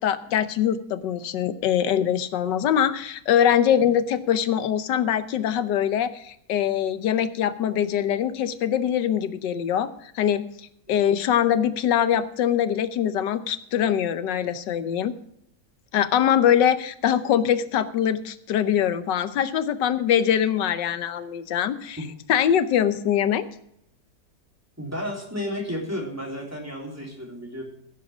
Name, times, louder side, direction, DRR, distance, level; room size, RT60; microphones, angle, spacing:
voice 1, 0.0-9.9 10.1-10.4 10.9-15.1 15.9-22.0 22.3-23.4, left 9 dB, 90° left, 12 dB, 1.5 m, -23 dB
voice 2, 24.8-27.6, equal, 10° right, -1 dB, 3.5 m, -32 dB
16.0 x 7.5 x 6.1 m, 0.74 s
omnidirectional pair, 1.8 m